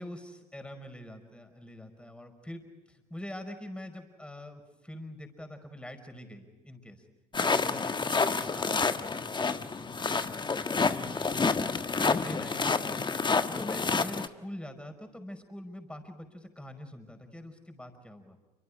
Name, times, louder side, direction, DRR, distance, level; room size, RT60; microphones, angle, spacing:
voice 1, 0.0-7.1 7.4-10.3 10.7-11.3 11.7-13.0 13.6-18.4, left 1 dB, 5° left, 6 dB, 5.4 m, -44 dB
sound 1, 7.3-14.3, left 4 dB, 25° left, 1.4 m, -29 dB
29.0 x 25.5 x 4.9 m, 1.2 s
hypercardioid pair, 55°, 19 cm